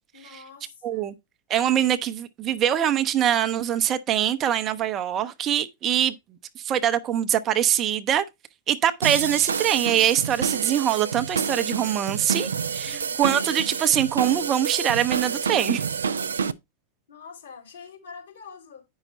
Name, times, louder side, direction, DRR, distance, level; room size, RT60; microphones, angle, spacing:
voice 1, 0.1-1.1 12.8-13.2 17.1-18.8, left 5 dB, 70° left, 3.8 m, -45 dB
voice 2, 0.8-1.1 1.5-6.2 6.6-8.2 8.7-12.9 13.2-15.8, right 10 dB, 30° right, 0.7 m, -23 dB
sound 1, 9.0-16.5, right 6 dB, 70° right, 0.4 m, -28 dB
8.9 x 5.6 x 4.0 m
figure-of-eight pair, 90°, 0 cm